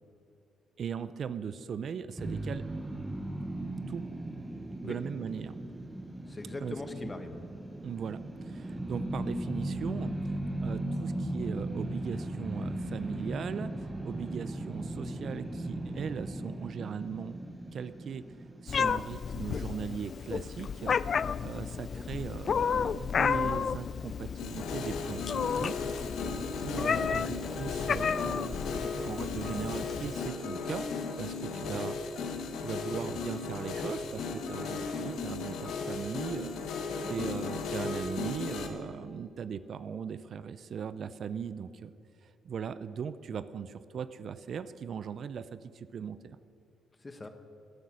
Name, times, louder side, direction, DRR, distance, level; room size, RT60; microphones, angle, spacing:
voice 1, 0.8-2.6 3.9-4.0 4.8-5.6 6.6-6.8 7.8-10.2 10.6-17.3 17.7-18.2 18.6-25.8 26.5-30.9 31.2-32.0 32.6-41.9 42.2-46.4, right 7 dB, 55° right, 14 dB, 0.5 m, -39 dB
sound 1, 2.2-19.4, right 1 dB, 15° right, 0.9 m, -37 dB
voice 2, 6.3-7.4 21.7-22.0 26.9-27.1 31.5-31.8 37.0-37.4 47.0-47.3, left 2 dB, 20° left, 7 dB, 1.4 m, -42 dB
Meow, 18.7-30.3, left 6 dB, 50° left, 0.3 m, -32 dB
sound 2, 24.4-38.7, left 4 dB, 75° left, 1.4 m, -36 dB
16.0 x 9.7 x 6.3 m, 2.6 s
cardioid pair, 90°, 0 cm